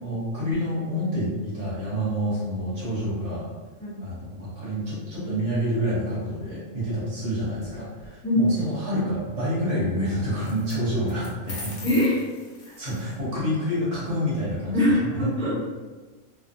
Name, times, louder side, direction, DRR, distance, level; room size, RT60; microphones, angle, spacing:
voice 1, 0.0-3.5 4.0-11.8 12.6-15.3, equal, 65° right, -9 dB, 1.5 m, -28 dB
sound 1, 7.6-8.1 10.4-10.8 11.1-13.1, left 2 dB, 60° left, 0.9 m, -41 dB
voice 2, 8.2-8.7 11.8-12.2 14.7-15.5, left 1 dB, 5° left, -10 dB, 0.8 m, -22 dB
3.1 x 2.1 x 2.6 m, 1.3 s
omnidirectional pair, 1.4 m